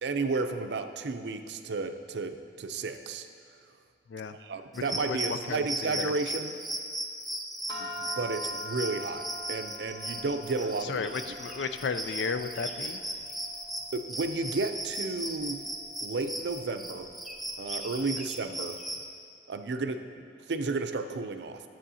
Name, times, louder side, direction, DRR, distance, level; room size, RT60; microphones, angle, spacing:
voice 1, 0.0-3.3 4.4-6.6 7.8-11.0 13.9-15.6 16.0-17.1 17.6-18.8 19.5-20.1 20.5-21.6, right 3 dB, 70° right, 8 dB, 0.5 m, -32 dB
voice 2, 4.7-6.1 10.8-13.0, left 5 dB, 75° left, 10 dB, 0.4 m, -34 dB
sound 1, 4.7-19.0, right 1 dB, ahead, 0.5 m, -37 dB
sound 2, 7.7-18.2, equal, 25° left, 1.2 m, -45 dB
12.5 x 7.6 x 2.8 m, 2.2 s
head